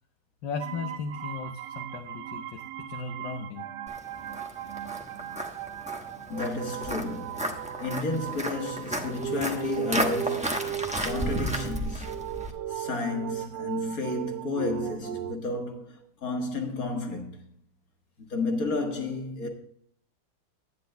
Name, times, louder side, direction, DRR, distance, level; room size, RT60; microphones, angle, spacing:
voice 1, 0.4-3.6, left 5 dB, 65° left, 1.4 m, -36 dB
sound 1, 0.6-15.4, right 11 dB, 70° right, 1.0 m, -37 dB
Walk footsteps, 3.9-12.5, right 1 dB, 10° right, 0.5 m, -33 dB
voice 2, 6.3-10.7 11.0-12.3 12.7-17.4 18.2-19.5, left 3 dB, 45° left, 2.0 m, -32 dB
11.5 x 9.7 x 3.3 m
omnidirectional pair, 2.3 m